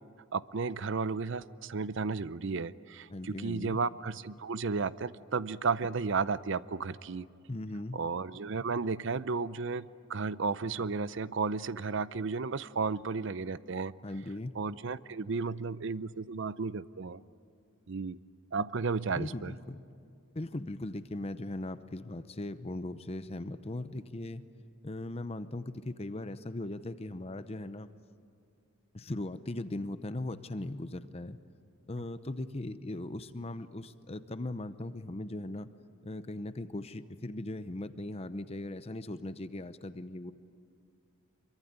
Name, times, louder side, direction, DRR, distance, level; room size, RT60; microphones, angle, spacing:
voice 1, 0.3-7.3 7.9-13.9 14.5-17.2 17.9-18.2 18.5-19.6, right 4 dB, 60° right, 16 dB, 0.6 m, -33 dB
voice 2, 3.1-3.8 7.5-8.0 14.0-14.6 19.1-19.8 20.3-24.4 24.8-27.9 28.9-31.4 31.9-35.7 36.0-40.3, left 1 dB, 30° left, 12 dB, 0.7 m, -39 dB
25.5 x 23.5 x 9.5 m, 2.3 s
head